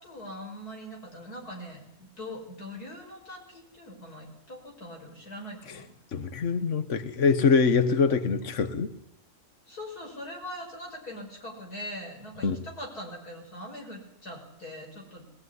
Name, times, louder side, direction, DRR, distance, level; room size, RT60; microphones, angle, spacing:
voice 1, 0.0-5.9 9.7-15.3, left 1 dB, 85° left, 5.9 m, -42 dB
voice 2, 6.1-8.9 12.4-12.6, left 5 dB, 55° left, 1.6 m, -24 dB
22.0 x 18.5 x 9.7 m
omnidirectional pair, 1.6 m